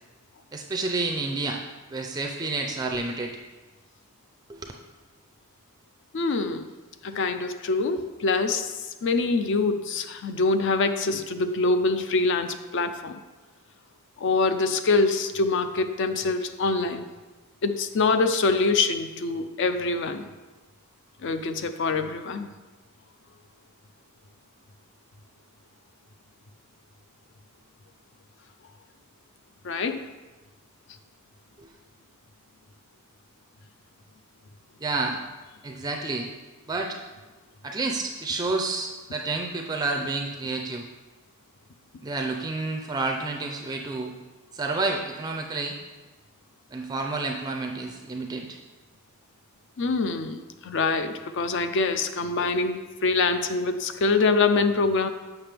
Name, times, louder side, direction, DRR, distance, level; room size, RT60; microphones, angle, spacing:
voice 1, 0.5-1.6 1.9-3.4 4.5-4.7 31.6-31.7 34.8-35.2 35.6-36.3 36.7-37.0 37.6-40.8 42.0-44.1 44.5-45.8 46.7-48.6, right 3 dB, 20° right, 2 dB, 0.4 m, -29 dB
voice 2, 6.1-6.7 7.0-13.2 14.2-17.0 17.6-20.3 21.2-22.5 29.6-30.0 49.8-55.1, left 3 dB, 55° left, 9 dB, 0.4 m, -25 dB
7.4 x 5.8 x 3.4 m, 1.2 s
head